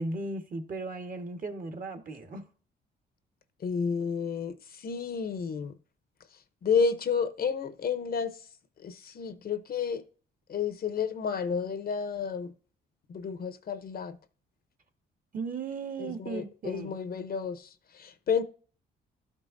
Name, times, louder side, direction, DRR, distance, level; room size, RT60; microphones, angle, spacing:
voice 1, 0.0-2.4 15.3-17.0, right 3 dB, 45° right, 1.4 m, -36 dB
voice 2, 3.6-5.7 6.6-8.5 8.8-10.0 10.5-12.5 13.1-14.2 16.0-18.4, left 6 dB, 50° left, 0.8 m, -31 dB
12.0 x 5.4 x 2.6 m
cardioid pair, 90°, 20 cm